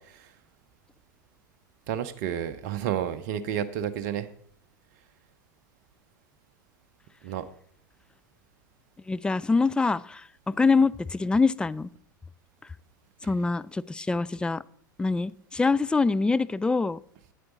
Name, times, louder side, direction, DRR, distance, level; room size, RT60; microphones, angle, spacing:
voice 1, 1.9-4.3 7.2-7.5, right 9 dB, 55° right, 12 dB, 0.7 m, -31 dB
voice 2, 9.1-11.9 13.2-14.6 15.0-17.0, left 4 dB, 10° left, 15 dB, 0.3 m, -25 dB
8.9 x 7.8 x 4.0 m, 0.65 s
figure-of-eight pair, 85°, 11 cm